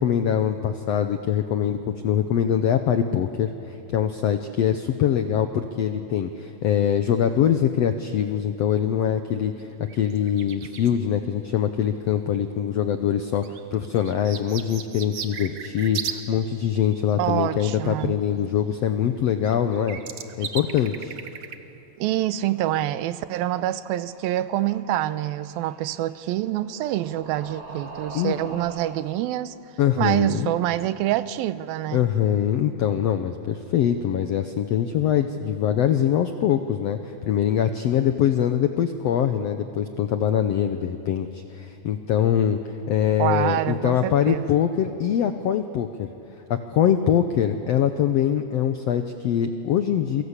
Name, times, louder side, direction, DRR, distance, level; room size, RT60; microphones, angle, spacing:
voice 1, 0.0-20.0 20.4-21.1 28.1-28.3 29.8-30.5 31.9-46.1 46.5-50.2, left 9 dB, 85° left, 1.4 m, -23 dB
sound 1, 9.6-9.7 9.9-10.9 12.3-12.4 13.4-16.2 16.5-18.0 19.2-19.3 19.4-21.6 22.1-22.2, right 8 dB, 60° right, 1.6 m, -36 dB
voice 2, 17.2-18.2 22.0-29.5 30.0-32.1 43.2-44.4, right 14 dB, 90° right, 2.6 m, -26 dB
sound 2, 22.3-29.0, right 3 dB, 45° right, 3.5 m, -45 dB
29.5 x 23.5 x 8.3 m
omnidirectional pair, 4.1 m